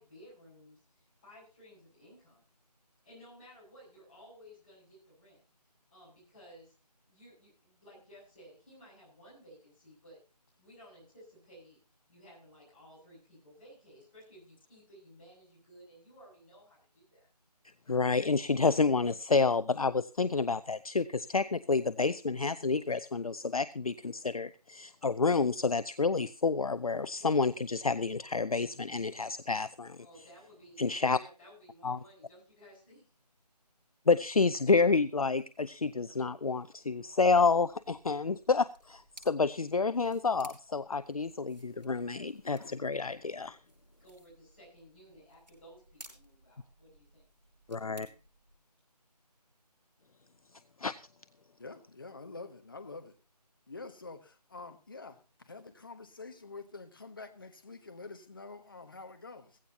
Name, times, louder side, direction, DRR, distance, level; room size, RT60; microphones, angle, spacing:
voice 1, 0.0-2.4 3.0-5.4 5.9-6.7 7.1-10.2 10.6-11.8 12.1-17.3 30.0-33.1 44.0-47.2 47.7-48.2, equal, 15° left, -8 dB, 7.5 m, -56 dB
voice 2, 17.9-30.0 30.8-31.2 31.8-32.0 34.1-43.6 47.7-48.1 50.8-50.9, left 4 dB, 55° left, 15 dB, 0.6 m, -29 dB
sound 1, 37.5-48.6, right 1 dB, 85° right, 7.4 m, -58 dB
voice 3, 51.6-53.1 53.7-59.6, left 3 dB, 30° left, 7 dB, 1.2 m, -47 dB
16.0 x 16.0 x 2.9 m, 0.31 s
figure-of-eight pair, 170°, 21 cm